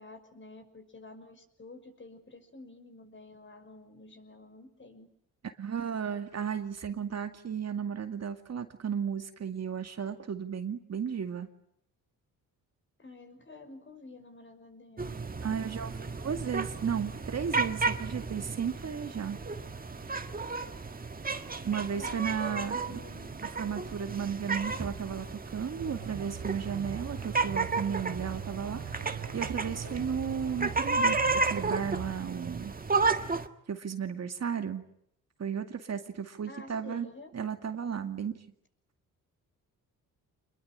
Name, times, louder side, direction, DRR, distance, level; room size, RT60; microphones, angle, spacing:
voice 1, 0.0-5.1 13.0-15.2 22.0-23.3 36.5-37.3, left 2 dB, 35° left, 7 dB, 6.0 m, -50 dB
voice 2, 5.6-11.5 15.4-19.4 21.6-23.0 23.6-31.2 31.4-32.7 33.7-34.8 35.4-37.1 37.3-38.4, right 7 dB, 50° right, 7 dB, 2.2 m, -34 dB
sound 1, 15.0-33.5, right 4 dB, 25° right, 1.7 m, -33 dB
sound 2, 25.8-32.1, right 9 dB, 85° right, 3.0 m, -42 dB
26.5 x 22.0 x 9.0 m, 0.71 s
cardioid pair, 85°, 34 cm